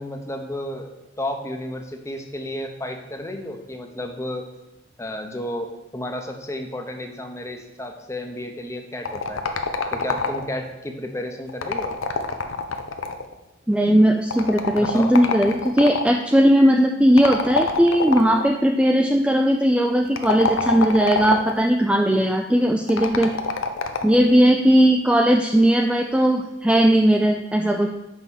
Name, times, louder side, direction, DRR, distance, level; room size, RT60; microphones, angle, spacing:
voice 1, 0.0-4.5 5.0-9.4 9.9-11.9 14.7-15.1, left 1 dB, 15° left, 4 dB, 0.8 m, -32 dB
sound 1, 9.0-10.7 11.5-13.3 14.3-16.1 17.2-18.5 20.0-21.6 22.9-24.2, left 4 dB, 85° left, 0.7 m, -26 dB
voice 2, 13.7-23.3 24.0-27.9, equal, 5° right, 2 dB, 0.3 m, -18 dB
5.6 x 5.6 x 6.3 m, 1.0 s
head